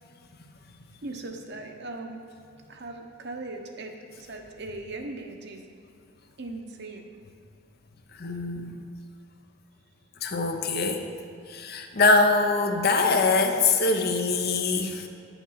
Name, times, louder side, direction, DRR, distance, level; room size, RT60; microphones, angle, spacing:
voice 1, 1.0-2.2 2.7-5.6 6.4-7.1, right 2 dB, 50° right, 3 dB, 1.0 m, -39 dB
voice 2, 8.2-8.8 10.2-11.0 11.5-15.0, left 3 dB, 45° left, 5 dB, 0.8 m, -23 dB
9.8 x 7.1 x 5.6 m, 2.5 s
head